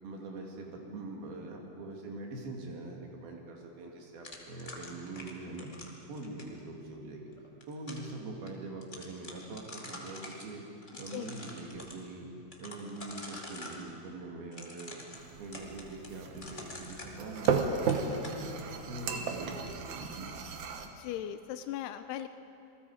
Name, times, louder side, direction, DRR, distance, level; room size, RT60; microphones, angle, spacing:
voice 1, 0.0-5.7 6.1-7.2 7.7-10.6 11.0-12.3 12.6-15.0 15.4-18.5 18.8-20.3, right 2 dB, 55° right, 0 dB, 4.1 m, -43 dB
sound 1, 4.2-6.6 7.4-8.1 8.5-8.6 8.8-10.5 10.8-12.0 12.5-13.8 14.5-17.6 17.9-18.4, left 1 dB, 35° left, 0.7 m, -46 dB
sound 2, 15.2-20.9, right 6 dB, 80° right, 1.7 m, -34 dB
voice 2, 21.0-22.3, left 11 dB, 80° left, 9 dB, 2.4 m, -38 dB
27.5 x 21.0 x 5.0 m, 2.9 s
omnidirectional pair, 5.3 m